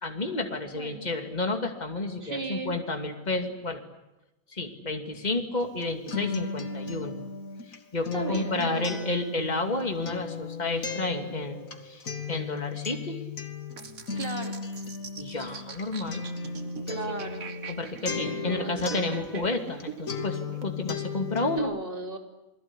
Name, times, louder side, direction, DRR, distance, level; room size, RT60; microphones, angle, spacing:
voice 1, 0.0-3.8 4.5-7.2 7.9-12.0 12.3-13.2 15.2-16.2 16.9-17.0 17.7-21.7, left 2 dB, 30° left, 5 dB, 2.7 m, -31 dB
voice 2, 0.7-1.1 2.2-2.8 8.1-9.0 14.1-14.6 16.9-17.6 18.4-18.7 21.6-22.2, right 2 dB, 35° right, 4 dB, 3.6 m, -36 dB
Acoustic guitar, 5.6-19.8 20.1-21.6, left 4 dB, 60° left, 2.7 m, -36 dB
sound 1, 13.8-20.7, right 5 dB, 65° right, 2.1 m, -42 dB
28.0 x 21.5 x 9.9 m, 0.95 s
omnidirectional pair, 1.6 m